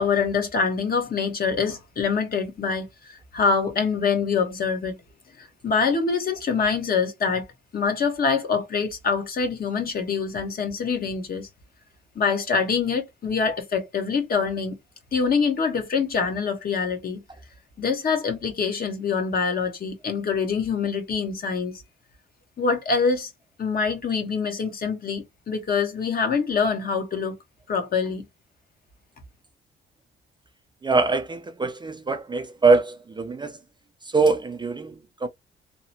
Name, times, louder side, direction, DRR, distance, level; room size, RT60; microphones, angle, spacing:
voice 1, 0.0-5.0 5.4-7.4 7.7-11.5 12.1-14.7 15.1-17.2 17.8-21.8 22.6-23.3 23.6-27.4 27.7-28.2, left 5 dB, 50° left, 1.1 m, -25 dB
voice 2, 30.8-33.6 34.0-35.3, right 3 dB, 25° right, 0.5 m, -23 dB
2.8 x 2.1 x 2.7 m
cardioid pair, 90°, 20 cm